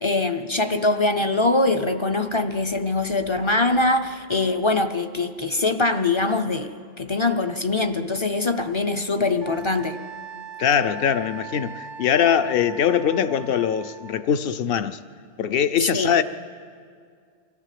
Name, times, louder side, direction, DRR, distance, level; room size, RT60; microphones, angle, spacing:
voice 1, 0.0-6.7 7.0-10.0 15.9-16.1, left 2 dB, 30° left, 0.6 m, -23 dB
Wind instrument woodwind instrument, 9.4-14.3, right 6 dB, 90° right, 1.0 m, -40 dB
voice 2, 10.6-15.0 15.4-16.2, left 8 dB, 60° left, 0.8 m, -22 dB
24.0 x 15.0 x 7.6 m
omnidirectional pair, 1.2 m